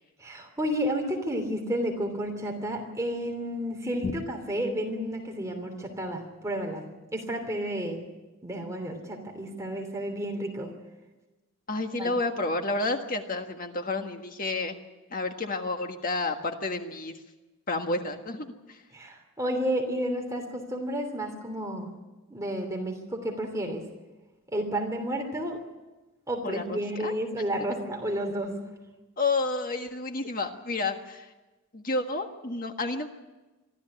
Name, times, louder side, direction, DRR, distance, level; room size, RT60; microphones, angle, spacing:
voice 1, 0.2-8.0 8.4-10.7 12.0-12.1 18.9-21.9 22.3-23.8 24.5-25.6 26.3-28.6, equal, 15° right, 2 dB, 3.0 m, -31 dB
voice 2, 11.7-14.8 15.1-17.2 17.7-18.8 26.4-27.1 29.2-31.3 31.7-33.1, left 3 dB, 40° left, 5 dB, 1.6 m, -30 dB
24.0 x 14.5 x 9.8 m, 1.1 s
head